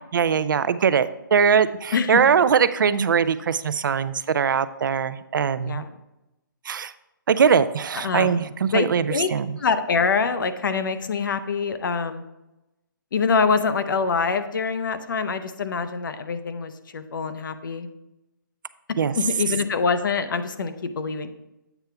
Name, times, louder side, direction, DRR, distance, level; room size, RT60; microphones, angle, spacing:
voice 1, 0.0-5.8 6.7-6.9 7.3-9.6 19.0-19.1, right 7 dB, 65° right, 14 dB, 0.4 m, -21 dB
voice 2, 8.0-8.5 8.7-9.3 9.6-12.2 13.1-17.9 19.2-21.3, left 5 dB, 65° left, 10 dB, 0.7 m, -25 dB
8.0 x 5.5 x 3.4 m, 0.95 s
hypercardioid pair, 160°, 11 cm